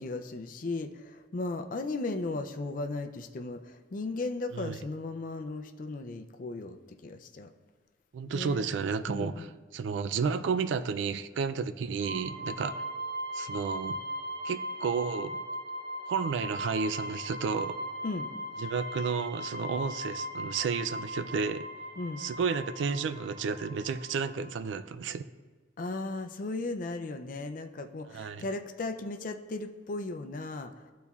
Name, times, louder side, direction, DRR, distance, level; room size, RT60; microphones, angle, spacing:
voice 1, 0.0-7.5 8.3-8.6 9.1-9.5 18.0-18.3 22.0-22.2 25.8-30.7, left 2 dB, 45° left, 7 dB, 0.4 m, -36 dB
voice 2, 8.1-9.5 9.7-12.8 13.3-14.0 14.4-15.4 16.1-17.8 18.6-21.7 22.2-25.2 28.1-28.4, right 5 dB, 80° right, 11 dB, 0.3 m, -32 dB
sound 1, 12.0-24.5, equal, 45° right, 1.9 m, -39 dB
12.0 x 4.1 x 2.4 m, 1.4 s
head